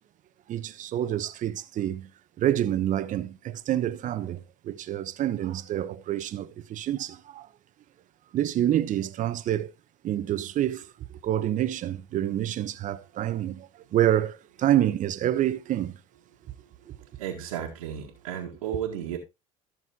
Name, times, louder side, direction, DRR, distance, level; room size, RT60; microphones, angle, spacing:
voice 1, 0.5-2.1 2.4-7.5 8.3-9.7 10.0-16.0 16.9-17.0, right 12 dB, 45° right, 0.9 m, -27 dB
voice 2, 16.4-19.2, right 9 dB, 80° right, 1.7 m, -35 dB
14.0 x 6.4 x 2.9 m
hypercardioid pair, 75°, 18 cm